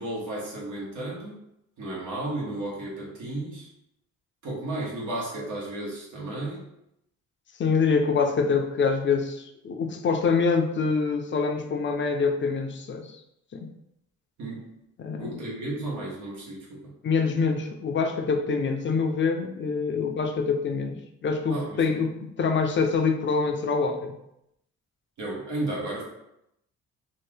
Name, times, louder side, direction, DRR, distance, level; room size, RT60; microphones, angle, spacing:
voice 1, 0.0-1.4 1.8-3.7 4.4-6.6 14.4-14.7 15.2-16.9 21.5-21.8 25.2-26.0, right 2 dB, 80° right, -4 dB, 1.2 m, -33 dB
voice 2, 7.6-13.2 13.5-13.7 15.0-15.4 17.0-24.2, left 5 dB, 40° left, 4 dB, 0.5 m, -25 dB
2.8 x 2.5 x 3.3 m, 0.81 s
cardioid pair, 90°, 30 cm